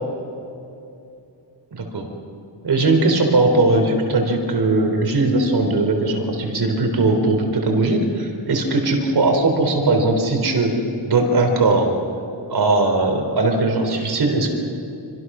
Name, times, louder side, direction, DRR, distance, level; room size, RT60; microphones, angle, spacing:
voice 1, 1.7-2.1 2.6-10.7 11.0-12.0 12.5-14.5, right 2 dB, 60° right, 3 dB, 4.0 m, -19 dB
27.0 x 26.0 x 6.3 m, 2.7 s
wide cardioid pair, 180°, 44 cm